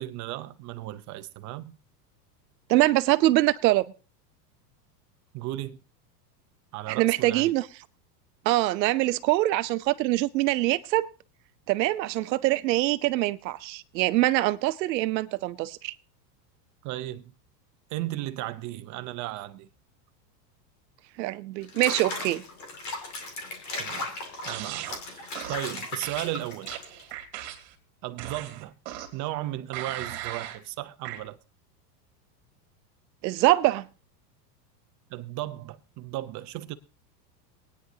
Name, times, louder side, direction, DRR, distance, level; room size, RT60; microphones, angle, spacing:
voice 1, 0.0-1.8 5.3-5.8 6.7-7.5 16.8-17.3 17.9-19.7 23.7-24.1 24.4-26.7 28.0-28.7 29.1-31.4 35.1-36.7, right 15 dB, 35° right, 0.7 m, -35 dB
voice 2, 2.7-3.9 6.9-7.7 8.4-11.1 11.7-15.9 21.2-22.4 33.2-33.9, right 17 dB, 80° right, 0.8 m, -24 dB
Water / Bathtub (filling or washing), 21.6-27.1, left 2 dB, 35° left, 2.4 m, -37 dB
sound 1, 24.5-25.0 25.3-25.7 26.0-27.7 28.2-29.2 29.7-30.6 31.0-31.2, right 12 dB, 55° right, 2.4 m, -38 dB
22.5 x 9.4 x 2.8 m
supercardioid pair, 135°, 50 cm